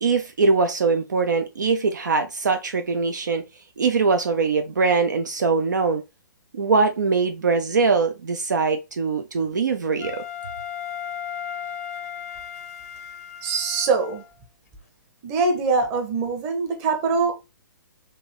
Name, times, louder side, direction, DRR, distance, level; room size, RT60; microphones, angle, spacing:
voice 1, 0.0-3.4 3.8-6.0 6.6-10.2, right 4 dB, 65° right, 0.5 m, -22 dB
Wind instrument woodwind instrument, 10.0-14.3, left 9 dB, 45° left, 0.6 m, -35 dB
voice 2, 13.4-14.2 15.2-17.3, right 4 dB, 30° right, 1.1 m, -23 dB
3.8 x 2.7 x 4.3 m
figure-of-eight pair, 120°, 11 cm